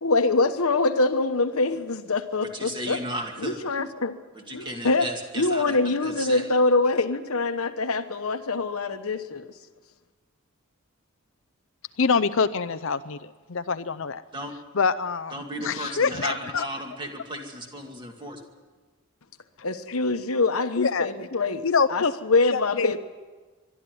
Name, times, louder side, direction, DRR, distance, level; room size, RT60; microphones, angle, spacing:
voice 1, 0.0-3.0 3.4-4.2 4.5-5.1 5.3-9.5 19.6-23.0, left 3 dB, 85° left, 8 dB, 1.2 m, -24 dB
voice 2, 2.4-3.6 4.3-5.8 6.0-6.5 14.3-14.5 15.3-18.5, right 1 dB, 20° right, 2 dB, 2.3 m, -35 dB
voice 3, 12.0-14.2 14.8-15.4 15.6-16.7 20.8-21.1 21.6-22.1 22.5-23.0, left 5 dB, 65° left, 12 dB, 0.6 m, -25 dB
22.0 x 12.5 x 9.4 m, 1.4 s
head